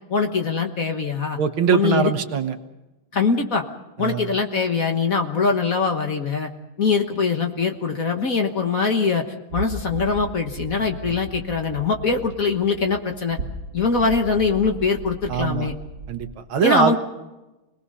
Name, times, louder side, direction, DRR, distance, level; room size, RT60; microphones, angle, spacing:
voice 1, 0.1-1.4 1.7-2.1 3.1-3.6 4.0-6.5 6.8-9.2 9.5-13.4 13.7-15.7 16.6-16.9, left 4 dB, 45° left, 4 dB, 1.5 m, -22 dB
voice 2, 1.4-2.6 4.0-4.3 11.0-11.2 15.3-15.7 16.1-16.9, right 7 dB, 65° right, 8 dB, 1.9 m, -22 dB
sound 1, 9.5-16.3, right 3 dB, 50° right, 2.2 m, -36 dB
28.5 x 20.0 x 5.5 m, 1.0 s
omnidirectional pair, 2.4 m